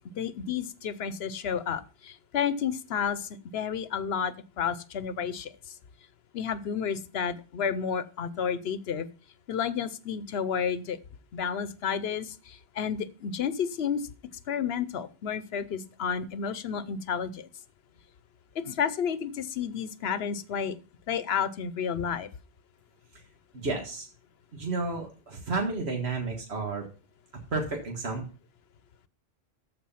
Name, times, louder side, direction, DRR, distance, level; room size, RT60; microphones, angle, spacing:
voice 1, 0.2-5.5 6.3-9.1 9.5-11.0 11.3-14.0 14.5-17.5 18.6-20.8 21.1-22.3, left 7 dB, 75° left, 15 dB, 1.0 m, -31 dB
voice 2, 23.5-24.1 24.5-26.8 27.5-28.2, right 3 dB, 85° right, 2 dB, 1.9 m, -31 dB
13.5 x 5.0 x 5.6 m, 0.36 s
omnidirectional pair, 1.1 m